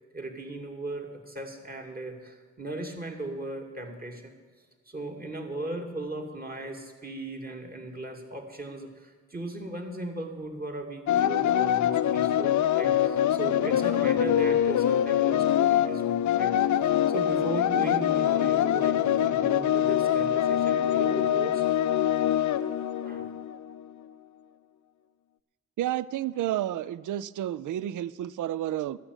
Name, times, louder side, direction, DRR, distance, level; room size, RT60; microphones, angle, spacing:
voice 1, 0.1-4.4 4.9-16.5 16.8-21.6 23.0-23.3, right 2 dB, 30° right, 2 dB, 2.5 m, -37 dB
sound 1, 11.1-23.8, left 11 dB, 65° left, 0.5 m, -24 dB
voice 2, 25.8-29.0, right 12 dB, 75° right, 19 dB, 0.5 m, -31 dB
12.5 x 6.7 x 9.8 m, 1.5 s
cardioid pair, 50°, 31 cm